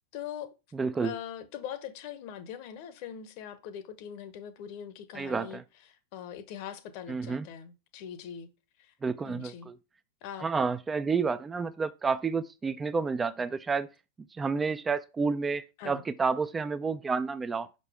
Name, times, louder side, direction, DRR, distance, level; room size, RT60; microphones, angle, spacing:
voice 1, 0.1-0.5 1.0-5.6 5.9-8.5 8.8-8.9 9.2-9.7 10.2-10.5 15.8-16.0, left 9 dB, 45° left, 0.9 m, -42 dB
voice 2, 0.7-1.1 5.1-5.6 7.1-7.5 9.0-9.8 10.4-13.9 14.4-17.7, right 4 dB, 15° right, 0.4 m, -30 dB
6.2 x 5.3 x 3.5 m
figure-of-eight pair, 90°, 0 cm